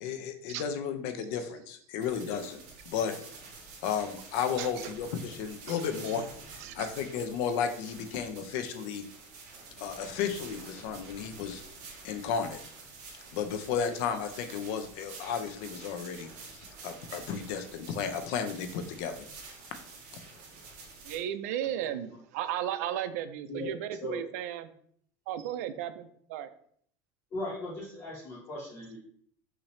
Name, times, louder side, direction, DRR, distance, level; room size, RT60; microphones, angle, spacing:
voice 1, 0.0-2.6 2.9-3.1 3.8-6.2 6.7-9.0 9.8-11.6 12.0-12.6 13.3-19.3 20.1-20.2, left 7 dB, 60° left, 8 dB, 0.6 m, -33 dB
sound 1, 2.0-21.2, right 4 dB, 50° right, 1.5 m, -48 dB
voice 2, 4.6-4.9 5.7-5.8 6.6-6.9 21.0-24.7 25.3-26.5, right 11 dB, 90° right, 11 dB, 0.4 m, -35 dB
voice 3, 27.3-29.0, left 1 dB, 35° left, -8 dB, 1.3 m, -38 dB
5.7 x 2.7 x 3.2 m, 0.63 s
cardioid pair, 170°, 8 cm